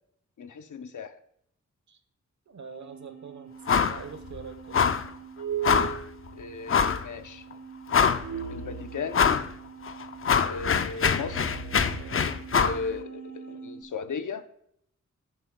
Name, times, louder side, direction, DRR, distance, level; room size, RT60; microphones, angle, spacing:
voice 1, 0.4-1.1 6.3-7.4 8.5-9.3 10.4-11.5 12.5-14.5, left 4 dB, 85° left, 10 dB, 0.7 m, -36 dB
voice 2, 2.5-4.8 12.0-12.3, right 6 dB, 70° right, 8 dB, 1.1 m, -44 dB
sound 1, 2.6-13.8, right 8 dB, 55° right, 3.2 m, -40 dB
sound 2, 3.7-4.0 4.3-4.4 4.7-5.1 5.6-6.0 6.7-7.0 7.5-7.6 7.9-8.4 9.1-9.5 9.9-12.8, left 6 dB, 45° left, 0.5 m, -24 dB
18.5 x 7.6 x 2.3 m, 0.74 s
wide cardioid pair, 110°, 30 cm